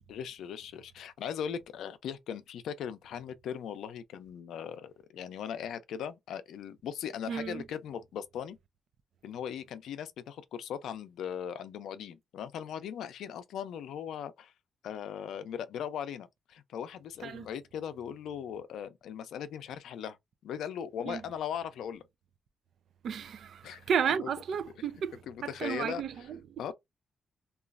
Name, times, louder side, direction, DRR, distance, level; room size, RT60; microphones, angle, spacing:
voice 1, 0.1-8.6 9.2-14.5 14.8-20.2 20.4-22.0 23.6-23.8 25.3-26.0 26.6-26.7, left 8 dB, 85° left, 0.4 m, -39 dB
voice 2, 7.3-7.6 17.2-17.5 21.0-21.2 23.0-26.7, right 7 dB, 70° right, 0.4 m, -33 dB
3.0 x 2.3 x 2.4 m
cardioid pair, 85°, 0 cm